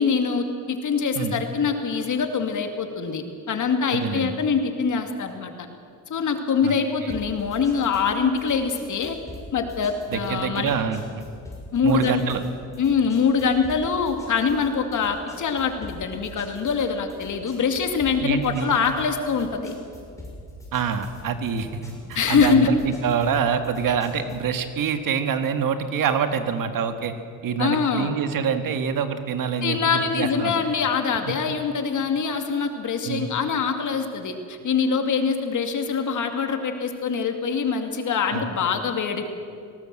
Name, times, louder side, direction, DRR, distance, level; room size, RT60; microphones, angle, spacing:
voice 1, 0.0-5.7 6.1-9.2 9.5-10.7 11.7-12.2 12.8-19.8 22.1-22.7 27.6-28.1 29.6-39.3, left 5 dB, 55° left, 5 dB, 2.5 m, -24 dB
voice 2, 3.9-4.3 6.6-6.7 7.0-7.2 10.1-11.0 11.8-12.4 18.2-18.7 20.7-27.1 27.4-30.5 31.3-31.4 33.0-33.3 38.3-38.5, right 7 dB, 65° right, 8 dB, 1.8 m, -26 dB
sound 1, 7.1-24.5, left 1 dB, 10° left, 6.8 m, -43 dB
18.5 x 18.0 x 7.8 m, 2.3 s
cardioid pair, 95°, 35 cm